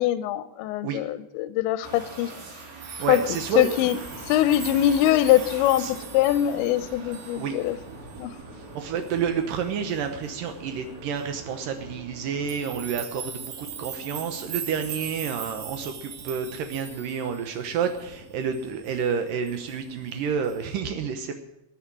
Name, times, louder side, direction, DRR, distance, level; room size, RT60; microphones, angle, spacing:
voice 1, 0.0-2.3 3.1-3.2 3.6-4.0 4.3-7.8 8.2-8.3, left 13 dB, 80° left, 13 dB, 2.8 m, -22 dB
sound 1, 1.8-15.3, right 3 dB, 70° right, 6.2 m, -45 dB
sound 2, 2.8-7.8 8.1-8.4 9.0-9.3 12.5-18.1 18.5-19.0 19.5-19.8 20.4-20.6, right 7 dB, 55° right, 2.8 m, -41 dB
voice 2, 3.0-3.7 5.8-5.9 7.0-7.6 8.7-21.4, right 6 dB, 85° right, 6 dB, 1.9 m, -29 dB
sound 3, 4.0-20.8, right 1 dB, 35° right, 1.4 m, -47 dB
15.0 x 9.4 x 7.4 m, 0.93 s
omnidirectional pair, 5.4 m